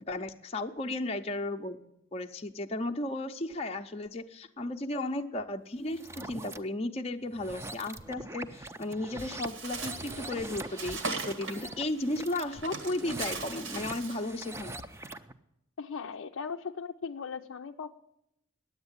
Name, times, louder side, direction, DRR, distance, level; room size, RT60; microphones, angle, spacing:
voice 1, 0.1-1.8 2.1-14.8, left 2 dB, 30° left, 4 dB, 0.6 m, -34 dB
sound 1, 5.9-6.6 7.3-15.3, right 2 dB, 15° right, 0.5 m, -43 dB
Bird, 9.2-14.3, right 3 dB, 80° right, 1.7 m, -40 dB
voice 2, 15.8-18.0, left 5 dB, 85° left, 4 dB, 0.5 m, -38 dB
10.5 x 8.0 x 9.7 m, 0.82 s
head